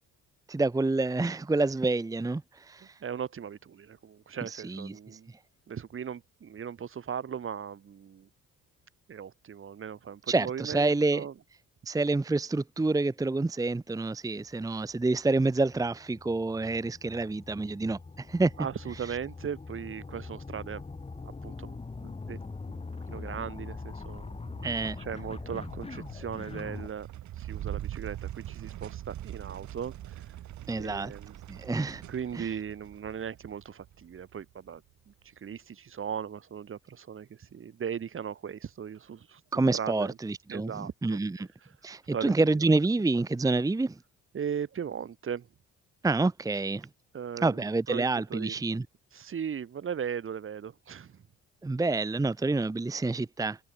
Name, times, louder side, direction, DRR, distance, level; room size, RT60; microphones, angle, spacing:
voice 1, 0.5-2.9 4.5-4.9 10.3-11.2 11.9-18.5 24.6-25.0 30.7-31.1 31.5-32.0 32.3-32.5 39.5-41.4 41.8-44.0 46.0-46.9 47.4-48.8 51.6-53.6, right 3 dB, 10° right, 0.8 m, -28 dB
voice 2, 2.8-5.3 5.7-8.3 9.1-11.3 18.6-20.8 21.1-22.4 22.7-27.1 27.4-30.4 30.8-31.4 32.1-39.4 39.7-40.2 40.5-40.9 41.6-41.7 42.1-42.7 44.3-45.5 47.1-48.5 49.1-51.2, right 8 dB, 45° right, 1.4 m, -38 dB
sound 1, 14.4-26.9, left 3 dB, 20° left, 1.4 m, -42 dB
sound 2, 24.3-34.9, right 12 dB, 70° right, 1.6 m, -43 dB
cardioid pair, 90°, 30 cm